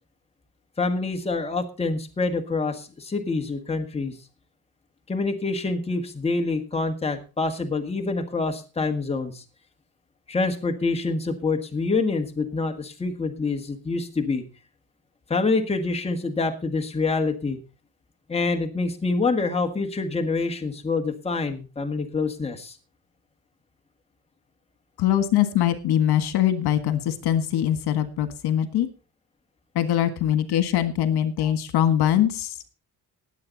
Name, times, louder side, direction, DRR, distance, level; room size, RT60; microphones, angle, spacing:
voice 1, 0.8-4.1 5.1-9.4 10.3-14.4 15.3-17.6 18.3-22.8, left 3 dB, 15° left, 4 dB, 1.6 m, -26 dB
voice 2, 25.0-28.9 29.7-32.7, left 11 dB, 85° left, 10 dB, 1.7 m, -22 dB
19.5 x 7.9 x 4.0 m, 0.32 s
cardioid pair, 145°, 38 cm